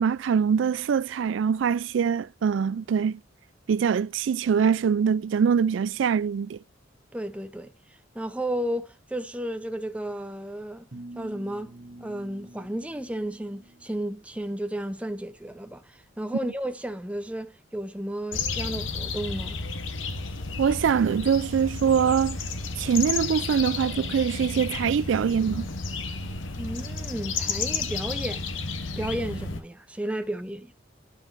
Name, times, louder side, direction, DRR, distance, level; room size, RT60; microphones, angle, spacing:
voice 1, 0.0-3.2 3.7-6.6 20.6-22.4 22.8-25.7, right 7 dB, 75° right, 0.3 m, -23 dB
voice 2, 7.1-10.9 11.1-11.7 12.0-19.6 26.6-28.5 29.0-30.7, right 1 dB, 5° right, 0.6 m, -33 dB
sound 1, 10.9-14.0, right 1 dB, 45° right, 1.0 m, -46 dB
sound 2, 18.3-29.6, left 4 dB, 85° left, 1.0 m, -32 dB
9.9 x 5.9 x 2.6 m
head